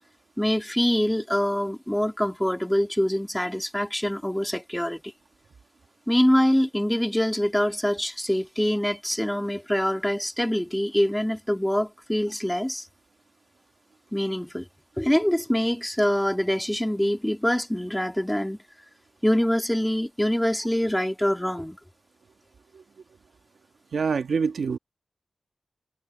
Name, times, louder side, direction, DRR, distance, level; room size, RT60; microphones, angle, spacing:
voice 1, 0.4-5.0 6.1-12.9 14.1-14.7 15.0-18.6 19.2-21.8, equal, 5° left, 2.8 m, -24 dB
voice 2, 23.9-24.8, right 5 dB, 90° right, 1.4 m, -25 dB
wide cardioid pair, 140°, 0 cm